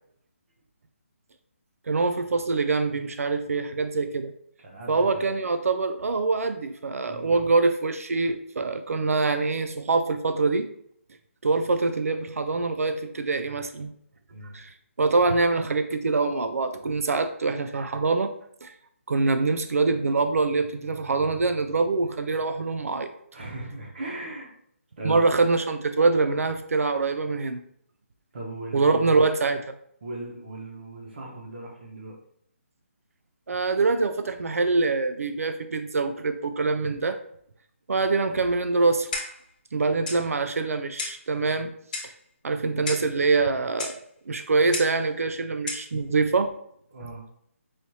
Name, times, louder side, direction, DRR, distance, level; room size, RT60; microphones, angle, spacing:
voice 1, 1.9-4.3 4.9-10.7 11.4-13.9 14.5-14.7 15.0-18.3 18.6-18.8 19.1-23.1 25.0-27.6 28.7-29.7 33.5-37.2 37.9-39.1 39.7-41.7 42.4-44.0 44.3-46.5, right 3 dB, 85° right, 9 dB, 0.4 m, -24 dB
voice 2, 4.6-5.3 7.0-7.3 14.3-14.5 23.3-24.5 25.0-25.3 28.3-29.2 30.0-32.2 46.9-47.2, right 2 dB, 45° right, -1 dB, 1.1 m, -38 dB
Clock, 39.1-39.5 40.1-40.2 41.0-41.3 41.9-42.2 42.9-43.1 43.8-44.0 44.7-45.0 45.7-45.9, left 3 dB, 35° left, 0.7 m, -33 dB
4.8 x 2.8 x 2.7 m, 0.68 s
hypercardioid pair, 170°, 8 cm